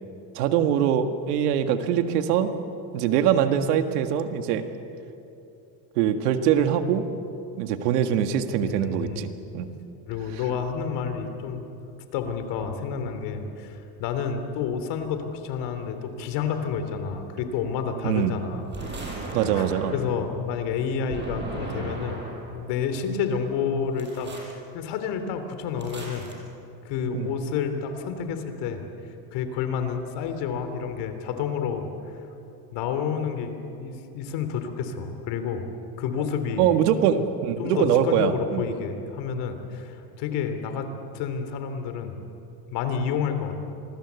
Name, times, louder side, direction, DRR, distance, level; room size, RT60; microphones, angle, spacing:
voice 1, 0.4-2.5 2.9-4.7 6.0-7.0 7.6-9.3 9.5-9.7 18.0-18.3 19.3-19.9 27.1-27.3 36.6-38.6, right 9 dB, 85° right, 8 dB, 1.9 m, -23 dB
voice 2, 8.6-9.2 10.1-11.7 12.1-18.7 19.5-22.2 22.5-24.3 24.7-26.3 26.8-28.8 29.3-31.9 32.7-33.5 33.8-35.7 36.0-36.7 37.6-40.9 41.1-42.2 42.7-43.5, left 6 dB, 65° left, 8 dB, 3.3 m, -29 dB
sound 1, 18.7-20.2 21.1-22.6 24.0-24.5 25.8-26.3, right 3 dB, 25° right, 6.2 m, -36 dB
27.0 x 21.0 x 8.3 m, 2.9 s
supercardioid pair, 125°, 45 cm